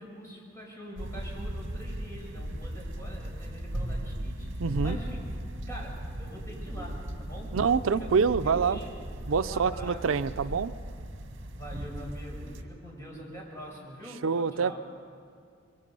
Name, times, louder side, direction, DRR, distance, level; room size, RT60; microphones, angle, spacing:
voice 1, 0.0-5.2 5.7-7.5 7.9-8.9 9.4-10.3 11.5-14.8, equal, 15° left, -3 dB, 5.5 m, -44 dB
sound 1, 1.0-12.6, right 1 dB, 65° right, 1.6 m, -37 dB
voice 2, 4.6-5.0 7.5-8.8 9.3-10.7 14.2-14.8, right 5 dB, 85° right, 12 dB, 0.5 m, -26 dB
25.5 x 22.5 x 5.4 m, 2.4 s
head